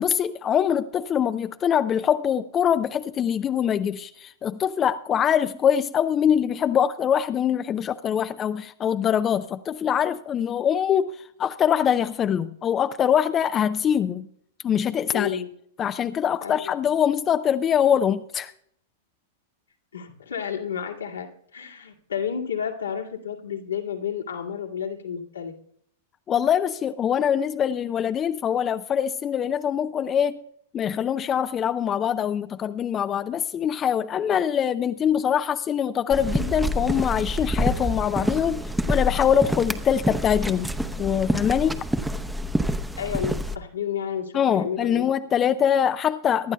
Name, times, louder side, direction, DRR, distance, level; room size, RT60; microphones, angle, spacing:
voice 1, 0.0-14.3 14.6-15.4 15.8-18.5 26.3-30.4 30.7-40.7 41.0-41.8 44.3-46.5, left 8 dB, 25° left, 0.5 m, -23 dB
voice 2, 15.1-15.5 16.4-16.7 19.9-21.3 21.5-25.5 43.0-45.0, left 8 dB, 80° left, 2.0 m, -31 dB
sound 1, 36.1-43.6, equal, 5° right, 0.8 m, -27 dB
24.5 x 11.5 x 2.3 m
figure-of-eight pair, 100°, 0 cm